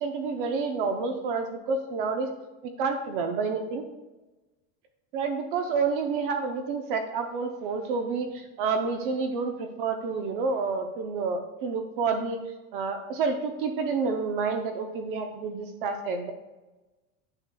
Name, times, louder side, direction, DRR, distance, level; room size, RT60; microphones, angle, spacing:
voice 1, 0.0-2.3 2.8-3.8 5.1-12.4 12.7-16.3, right 4 dB, 40° right, 5 dB, 0.6 m, -29 dB
9.7 x 6.1 x 2.2 m, 1.1 s
supercardioid pair, 170°, 41 cm